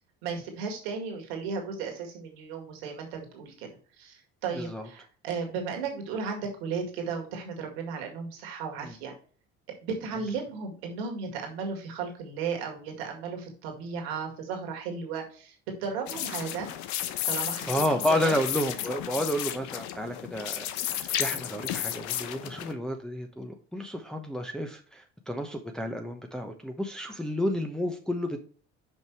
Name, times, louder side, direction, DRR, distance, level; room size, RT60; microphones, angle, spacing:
voice 1, 0.2-3.7 4.0-9.1 9.8-15.6 15.8-16.7 17.2-17.7 18.2-18.4, right 5 dB, 85° right, 2 dB, 2.0 m, -35 dB
voice 2, 4.6-4.9 8.8-8.9 17.7-28.4, equal, ahead, 2 dB, 0.9 m, -31 dB
sound 1, 16.1-22.7, left 11 dB, 70° left, 0.8 m, -33 dB
5.4 x 5.4 x 4.6 m, 0.41 s
supercardioid pair, 80°, 30 cm